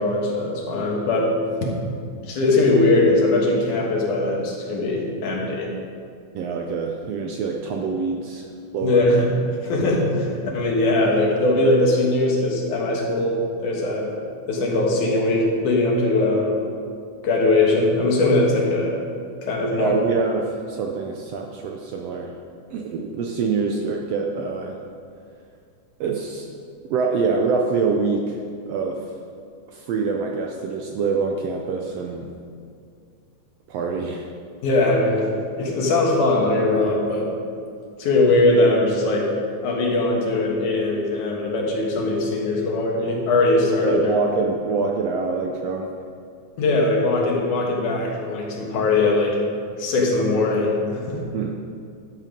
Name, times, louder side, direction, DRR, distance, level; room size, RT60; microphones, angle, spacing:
voice 1, 0.0-1.4 1.6-1.8 2.2-5.7 8.8-14.1 14.5-16.6 17.2-19.0 19.4-20.0 34.6-35.3 35.6-37.3 38.0-39.3 39.6-44.2 46.6-49.4 49.8-51.2, left 2 dB, 80° left, -2 dB, 3.1 m, -20 dB
voice 2, 6.3-8.5 8.7-9.0 19.6-22.3 22.7-24.8 26.0-26.5 26.9-28.4 28.7-29.0 29.7-32.3 33.7-34.2 43.8-45.9 51.3-51.5, right 4 dB, 75° right, 1 dB, 1.5 m, -25 dB
11.5 x 7.7 x 5.1 m, 2.3 s
omnidirectional pair, 3.5 m